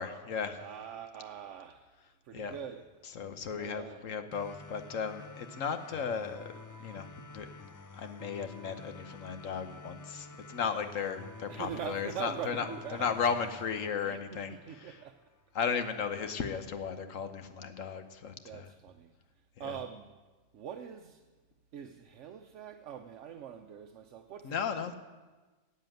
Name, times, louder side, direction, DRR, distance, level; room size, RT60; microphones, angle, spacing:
voice 1, 0.0-0.6 2.3-2.6 3.1-6.5 6.8-7.5 7.9-15.0 15.5-18.7 19.6-19.7 24.4-24.9, left 6 dB, 80° left, 1.4 m, -35 dB
voice 2, 0.6-1.9 2.2-2.9 3.5-4.0 11.5-13.2 14.0-15.2 15.6-15.8 18.4-19.1 19.6-20.1 20.5-21.2 21.7-24.9, right 9 dB, 70° right, 1.0 m, -43 dB
sound 1, 4.3-15.3, left 3 dB, 25° left, 0.4 m, -50 dB
13.0 x 8.4 x 9.1 m
omnidirectional pair, 1.3 m